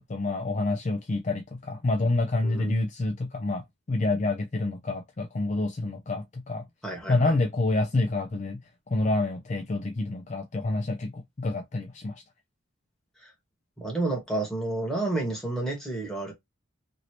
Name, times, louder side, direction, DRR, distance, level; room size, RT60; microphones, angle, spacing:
voice 1, 0.0-3.6 3.9-6.6 7.1-8.6 8.9-12.2, left 2 dB, 35° left, 0.4 m, -28 dB
voice 2, 2.4-2.7 6.8-7.4 13.2-13.3 13.8-16.3, right 2 dB, ahead, 1.3 m, -30 dB
3.1 x 2.7 x 2.8 m
head